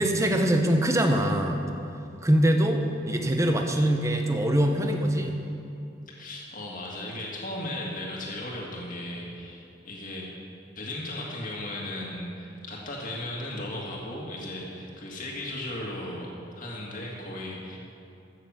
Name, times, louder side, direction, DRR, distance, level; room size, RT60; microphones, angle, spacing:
voice 1, 0.0-1.6 2.2-2.8 3.1-5.4, right 1 dB, 15° right, 3 dB, 1.0 m, -23 dB
voice 2, 6.1-10.3 10.8-17.8, left 1 dB, 45° left, -3 dB, 2.1 m, -36 dB
13.5 x 6.8 x 7.5 m, 2.6 s
head